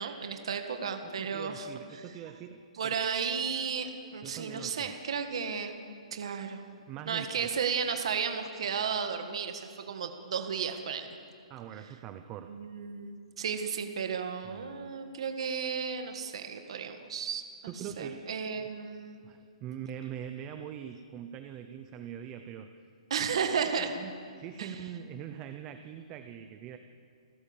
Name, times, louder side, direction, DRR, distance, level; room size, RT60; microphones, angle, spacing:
voice 1, 0.0-1.7 1.9-2.0 2.8-5.7 6.1-6.6 7.1-11.1 12.5-17.4 18.0-19.2 23.1-23.9 24.6-24.7, right 6 dB, 55° right, 6 dB, 1.8 m, -33 dB
voice 2, 1.0-3.0 4.2-4.9 6.9-7.5 11.5-12.5 14.4-14.7 17.7-18.3 18.5-18.7 19.2-22.7 23.8-24.1 24.4-26.8, right 9 dB, 15° right, 8 dB, 0.6 m, -43 dB
29.0 x 15.0 x 7.3 m, 2.3 s
hypercardioid pair, 175°, 4 cm